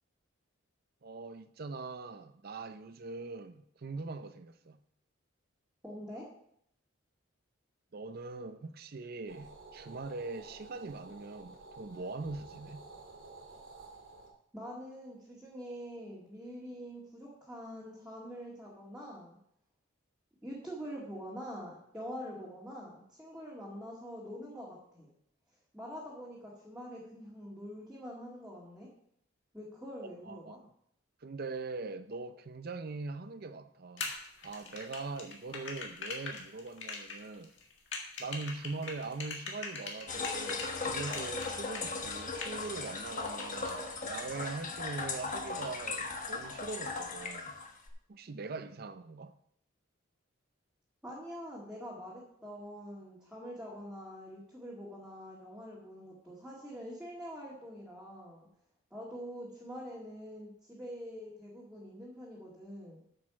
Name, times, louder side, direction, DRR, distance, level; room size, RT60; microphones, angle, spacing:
voice 1, 1.0-4.8 7.9-12.9 30.2-30.6 31.2-34.1 34.4-37.5 38.2-47.6 48.1-49.3, right 3 dB, 50° right, 0.5 m, -42 dB
voice 2, 5.8-6.3 14.5-19.4 20.4-25.1 25.7-28.9 29.5-30.6 51.0-58.5 58.9-63.0, equal, 5° right, 1.9 m, -45 dB
sound 1, 9.3-14.3, right 3 dB, 70° right, 2.2 m, -52 dB
sound 2, 34.0-40.7 41.1-42.7 43.0-43.7, left 4 dB, 60° left, 1.8 m, -41 dB
sound 3, 40.1-47.9, left 3 dB, 40° left, 1.2 m, -38 dB
8.8 x 6.6 x 5.9 m
head